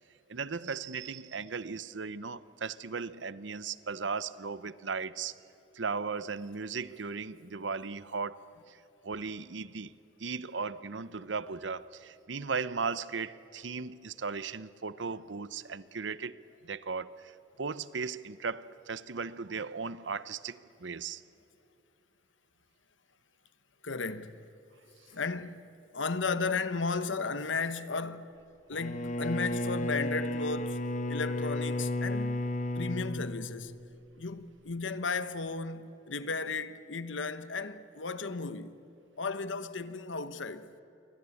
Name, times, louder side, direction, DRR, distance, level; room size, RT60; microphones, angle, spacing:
voice 1, 0.3-5.3 5.7-9.9 10.2-21.2, right 5 dB, 70° right, 0.8 m, -37 dB
voice 2, 23.8-24.4 25.1-25.6 25.9-28.3 28.7-30.8 31.1-32.4 32.7-33.8 34.2-38.8 39.2-40.7, left 4 dB, 80° left, 1.2 m, -34 dB
Bowed string instrument, 28.7-34.1, left 1 dB, 40° left, 1.3 m, -33 dB
28.0 x 24.0 x 8.5 m
head